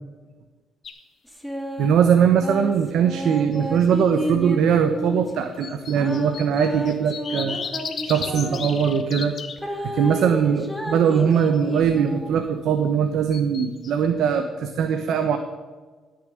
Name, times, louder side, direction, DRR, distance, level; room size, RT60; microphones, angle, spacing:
sound 1, 0.8-1.0 3.4-3.9 5.6-9.6 11.1-11.7 13.3-14.1, left 6 dB, 55° left, 1.5 m, -35 dB
sound 2, 1.3-1.9 2.4-5.3 6.0-9.0 9.6-12.3, equal, ahead, 2.5 m, -31 dB
voice 1, 1.8-7.6 8.0-9.3 9.9-15.4, right 7 dB, 75° right, 6 dB, 1.1 m, -21 dB
17.5 x 6.8 x 9.2 m, 1.4 s
cardioid pair, 90°, 0 cm